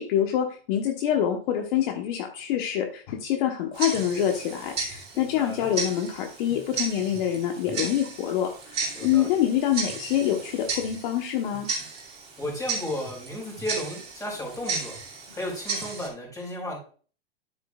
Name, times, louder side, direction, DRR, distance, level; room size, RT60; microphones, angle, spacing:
voice 1, 0.0-11.7, left 10 dB, 55° left, 3 dB, 1.2 m, -26 dB
Tick-tock, 3.7-16.1, right 4 dB, 20° right, 2.5 m, -35 dB
voice 2, 5.1-5.7 8.9-9.4 12.4-15.0 15.3-16.8, left 1 dB, 10° left, -1 dB, 4.6 m, -34 dB
9.9 x 8.1 x 2.4 m, 0.40 s
hypercardioid pair, 125°, 30 cm